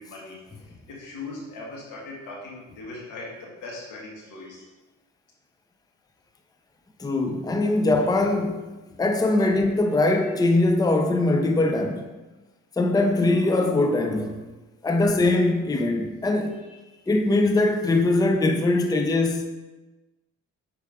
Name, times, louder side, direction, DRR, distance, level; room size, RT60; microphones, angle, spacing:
voice 1, 0.0-4.7 16.0-16.1 16.5-17.1, left 2 dB, 85° left, -4 dB, 1.9 m, -40 dB
voice 2, 7.0-8.7 9.0-12.0 12.8-14.5 14.8-16.6 17.1-19.5, left 2 dB, 15° left, 5 dB, 0.6 m, -22 dB
6.5 x 4.8 x 3.5 m, 1.1 s
cardioid pair, 90°, 30 cm